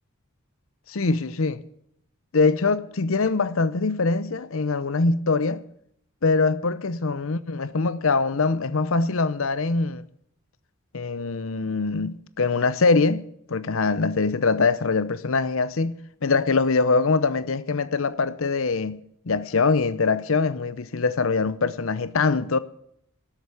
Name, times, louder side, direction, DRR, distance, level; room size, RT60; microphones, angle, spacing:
voice 1, 0.9-1.6 2.3-5.6 6.2-10.0 10.9-19.0 19.3-22.6, left 4 dB, 70° left, 0.7 m, -23 dB
12.5 x 8.0 x 9.6 m
head